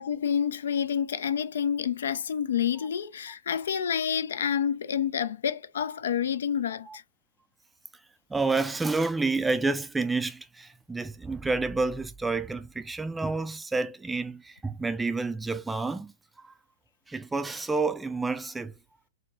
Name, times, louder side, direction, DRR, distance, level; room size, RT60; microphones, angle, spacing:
voice 1, 0.0-6.9, left 8 dB, 70° left, 0.3 m, -28 dB
voice 2, 8.3-16.1 16.4-16.5 17.1-18.7, right 3 dB, 10° right, 0.3 m, -29 dB
3.5 x 2.0 x 2.6 m
hypercardioid pair, 110°, 0 cm